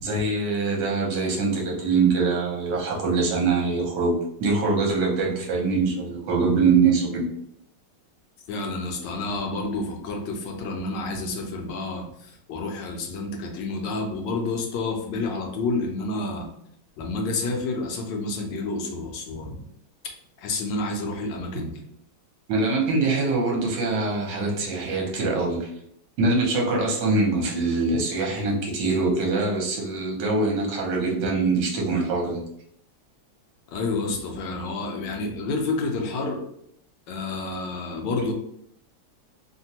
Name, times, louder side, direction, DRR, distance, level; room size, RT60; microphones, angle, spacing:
voice 1, 0.0-7.3 22.5-25.7 26.2-32.4, right 3 dB, 65° right, -1 dB, 1.4 m, -23 dB
voice 2, 8.5-16.5 17.0-19.6 20.4-21.8 33.7-36.4 37.1-38.3, left 3 dB, 70° left, 2 dB, 1.2 m, -29 dB
3.4 x 2.2 x 2.7 m, 0.72 s
omnidirectional pair, 2.2 m